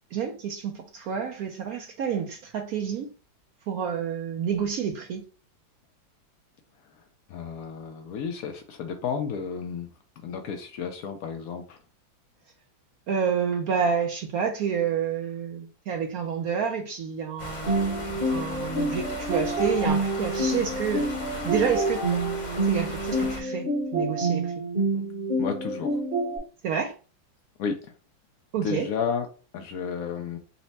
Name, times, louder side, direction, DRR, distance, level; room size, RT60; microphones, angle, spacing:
voice 1, 0.1-3.1 3.7-5.2 13.1-17.8 18.3-21.1 21.4-22.1 22.6-24.6 26.6-26.9 28.5-28.9, right 7 dB, 75° right, 0.8 m, -29 dB
voice 2, 7.3-9.9 10.2-11.8 25.4-26.0 27.6-27.9 28.6-29.3 29.5-30.4, left 6 dB, 75° left, 0.8 m, -32 dB
sound 1, 17.4-23.4, left 2 dB, 35° left, 0.8 m, -37 dB
sound 2, 17.7-26.4, right 2 dB, 35° right, 1.1 m, -27 dB
4.1 x 2.1 x 4.0 m
omnidirectional pair, 2.1 m